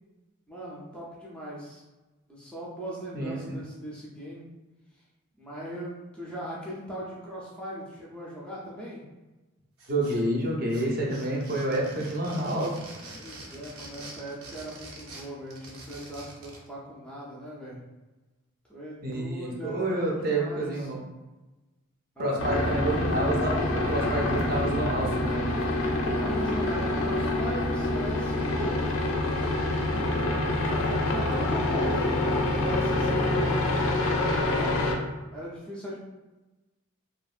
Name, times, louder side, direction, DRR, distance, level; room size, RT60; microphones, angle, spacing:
voice 1, 0.5-1.8 2.3-4.5 5.4-9.0 12.2-12.9 13.2-17.8 18.7-20.9 22.2-22.4 25.8-28.9 29.8-34.9 35.3-36.0, equal, 5° left, -6 dB, 0.4 m, -39 dB
voice 2, 3.1-3.6 9.9-12.7 19.0-21.0 22.2-25.5, right 1 dB, 45° right, -2 dB, 0.6 m, -28 dB
sound 1, 9.8-10.4 10.7-16.7, right 2 dB, 85° right, 0.6 m, -45 dB
sound 2, 22.4-35.0, left 2 dB, 75° left, 0.5 m, -26 dB
2.8 x 2.5 x 2.4 m, 1.1 s
head